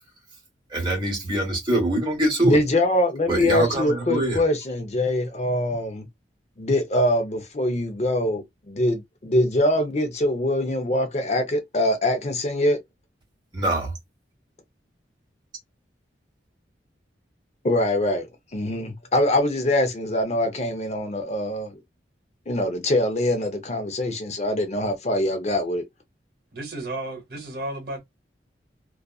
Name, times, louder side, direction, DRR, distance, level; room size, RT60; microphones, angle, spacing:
voice 1, 0.7-2.6 3.3-4.4 13.5-13.9, right 1 dB, 25° right, 1.2 m, -24 dB
voice 2, 2.4-6.1 6.6-12.8 17.6-21.8 22.5-25.8, left 1 dB, 35° left, 0.5 m, -23 dB
voice 3, 26.5-28.0, right 2 dB, 55° right, 0.9 m, -33 dB
2.5 x 2.4 x 2.3 m
head